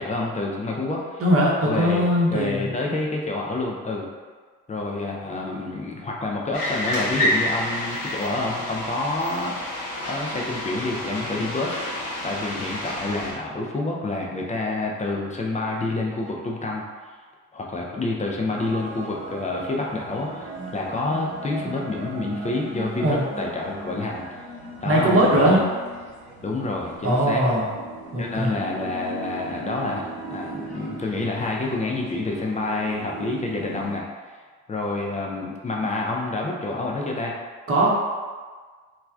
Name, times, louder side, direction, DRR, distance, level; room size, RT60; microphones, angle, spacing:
voice 1, 0.0-1.2 1.6-2.0 2.3-4.1 4.7-9.6 10.1-16.8 17.5-24.2 24.8-25.6 26.4-27.4 28.2-30.0 30.3-34.3 34.7-37.3, left 2 dB, 15° left, -1 dB, 0.5 m, -28 dB
voice 2, 1.2-2.7 23.0-23.2 24.8-25.6 27.0-27.7 28.1-28.5 37.7-37.9, equal, 30° right, -4 dB, 0.9 m, -20 dB
sound 1, 6.5-13.3, left 1 dB, 90° left, 0.7 m, -29 dB
sound 2, 18.5-34.0, right 2 dB, 75° right, 0.9 m, -38 dB
3.1 x 2.3 x 2.3 m, 1.5 s
hypercardioid pair, 45°, 44 cm